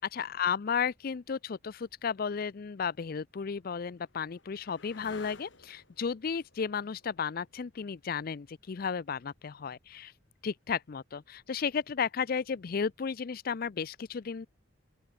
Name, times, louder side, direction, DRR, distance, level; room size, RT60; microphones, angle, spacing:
voice 1, 0.1-10.1 10.4-14.5, left 6 dB, 45° left, 0.4 m, -34 dB
sound 1, 3.3-10.4 12.7-13.3, left 3 dB, 70° left, 5.5 m, -56 dB
open air
head